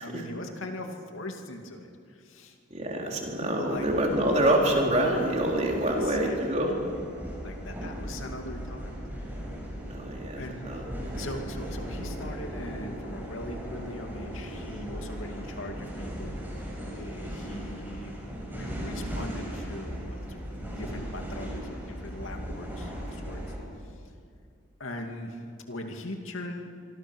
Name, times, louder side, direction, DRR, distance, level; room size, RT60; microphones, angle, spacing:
voice 1, 0.0-2.6 3.4-3.9 5.8-6.6 7.4-9.4 10.4-10.9 11.2-18.2 18.5-23.4 24.8-25.4 25.7-26.7, left 1 dB, 75° left, 3 dB, 2.6 m, -41 dB
voice 2, 2.7-6.7 9.9-11.1, right 1 dB, 35° right, 0 dB, 3.9 m, -26 dB
sound 1, 3.7-23.6, equal, 10° right, 6.1 m, -38 dB
25.0 x 25.0 x 6.3 m, 2.2 s
head